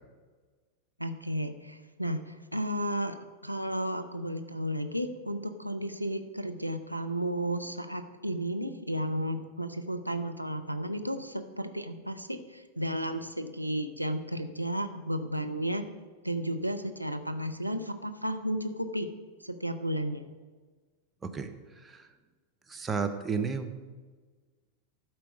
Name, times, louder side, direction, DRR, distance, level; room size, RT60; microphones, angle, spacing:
voice 1, 1.0-3.2 3.4-15.9 16.2-19.1 19.4-20.3, equal, 90° right, 7 dB, 0.6 m, -33 dB
voice 2, 21.2-22.1 22.7-23.8, right 5 dB, 15° right, 6 dB, 0.8 m, -33 dB
12.0 x 4.6 x 6.3 m, 1.4 s
figure-of-eight pair, 90°, 0 cm